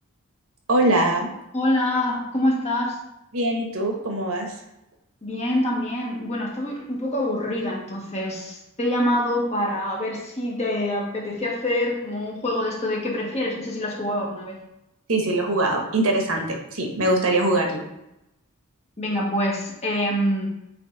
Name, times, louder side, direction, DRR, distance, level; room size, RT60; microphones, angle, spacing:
voice 1, 0.7-1.3 3.3-4.5 15.1-17.8, right 2 dB, 70° right, 2 dB, 1.2 m, -22 dB
voice 2, 1.5-3.0 5.2-14.6 19.0-20.5, left 1 dB, 30° left, -3 dB, 1.6 m, -25 dB
8.2 x 3.3 x 4.0 m, 0.88 s
head